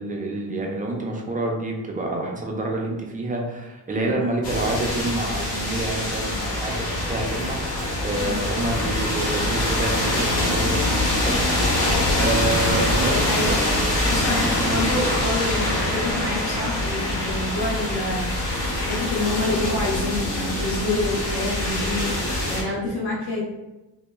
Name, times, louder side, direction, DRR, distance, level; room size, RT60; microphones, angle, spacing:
voice 1, 0.0-7.6 8.0-14.9, right 2 dB, 20° right, -1 dB, 0.3 m, -28 dB
sound 1, 4.4-22.6, left 1 dB, 60° left, 1.0 m, -24 dB
Fixed-wing aircraft airplane, 11.0-18.6, equal, ahead, 0.7 m, -38 dB
voice 2, 13.1-22.1 22.4-23.4, left 2 dB, 45° left, -7 dB, 0.7 m, -28 dB
2.1 x 2.0 x 3.1 m, 1.0 s
cardioid pair, 125°, 42 cm